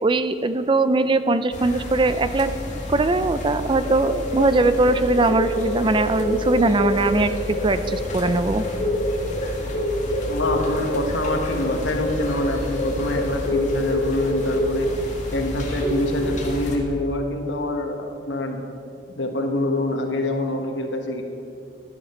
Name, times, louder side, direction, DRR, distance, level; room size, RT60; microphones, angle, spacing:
voice 1, 0.0-2.5 2.9-8.6, right 2 dB, 25° right, 12 dB, 0.4 m, -21 dB
sound 1, 1.5-16.8, left 1 dB, 40° left, 1.8 m, -26 dB
voice 2, 10.3-14.9 15.3-18.6 19.1-21.2, left 1 dB, 85° left, 4 dB, 1.4 m, -26 dB
15.0 x 11.0 x 4.4 m, 2.6 s
head